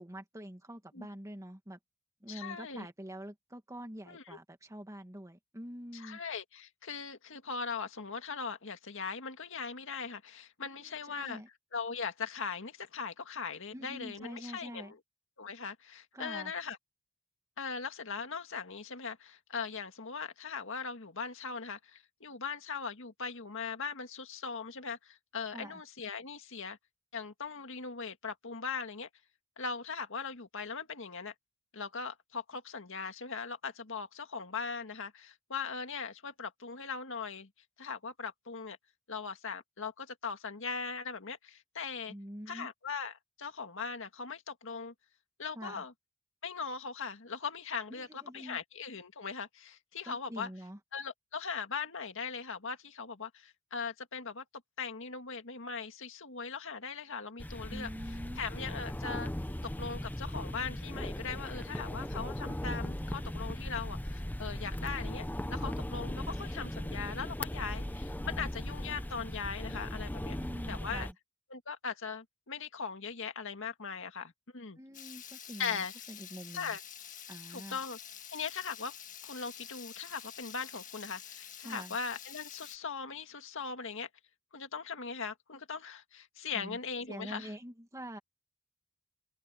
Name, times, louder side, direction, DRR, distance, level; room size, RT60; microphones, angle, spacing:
voice 1, 0.0-1.8 2.2-6.2 10.7-11.5 13.7-15.0 16.1-16.5 25.5-25.8 42.1-42.7 45.6-45.8 47.9-48.6 50.1-50.8 57.7-58.4 70.3-71.1 74.8-76.8 77.3-77.8 81.6-82.0 86.5-86.8 87.1-88.2, equal, 15° right, 2.0 m, -45 dB
voice 2, 2.3-2.9 4.1-4.4 5.9-11.4 11.7-15.0 15.4-16.8 17.6-26.8 27.1-29.1 29.6-31.3 31.7-37.5 37.8-38.8 39.1-42.1 42.5-44.9 45.4-45.9 46.4-50.5 50.9-54.4 54.8-57.9 58.4-59.3 59.8-70.4 70.7-71.1 71.5-74.8 75.6-75.9 76.5-76.8 77.5-78.0 78.3-78.9 79.2-84.1 84.5-87.5, left 5 dB, 65° left, 2.0 m, -40 dB
sound 1, 57.4-71.1, left 1 dB, 10° left, 0.7 m, -38 dB
Water tap faucet / Liquid, 74.9-82.8, left 9 dB, 40° left, 1.6 m, -48 dB
head